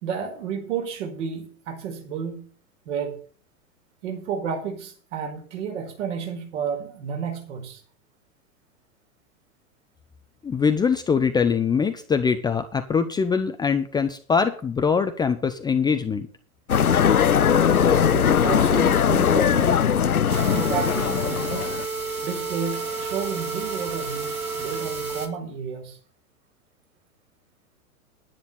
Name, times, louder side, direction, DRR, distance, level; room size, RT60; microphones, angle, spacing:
voice 1, 0.0-2.5 2.8-3.2 4.0-7.8 18.1-19.8 20.5-21.8 22.2-26.0, right 7 dB, 55° right, 4.7 m, -31 dB
voice 2, 10.4-16.3, left 6 dB, 10° left, 0.6 m, -23 dB
sound 1, 16.7-21.9, left 8 dB, 90° left, 0.6 m, -20 dB
sound 2, 20.3-25.3, right 4 dB, 85° right, 2.2 m, -31 dB
10.5 x 10.0 x 5.7 m
figure-of-eight pair, 100°, 43 cm